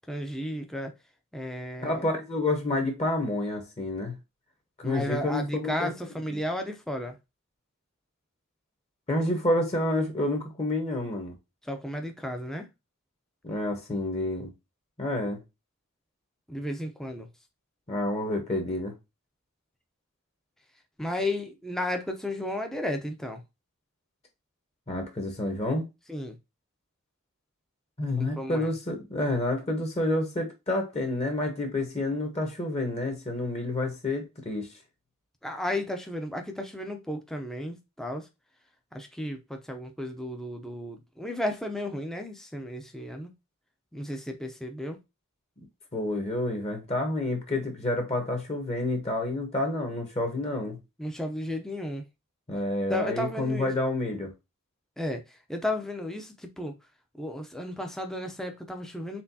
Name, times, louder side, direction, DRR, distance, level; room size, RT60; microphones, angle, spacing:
voice 1, 0.1-0.9 1.3-2.0 4.8-7.2 11.6-12.7 16.5-17.3 21.0-23.4 26.1-26.4 28.2-28.7 35.4-38.3 38.9-43.3 43.9-45.0 51.0-52.0 52.9-53.7 55.0-56.8 57.1-59.2, left 1 dB, ahead, 0.5 m, -33 dB
voice 2, 1.8-4.2 4.8-5.9 9.1-11.3 13.4-14.5 15.0-15.4 17.9-18.9 24.9-25.9 28.0-34.7 45.9-50.8 52.5-54.3, left 1 dB, 30° left, 1.0 m, -29 dB
4.3 x 4.0 x 2.7 m
head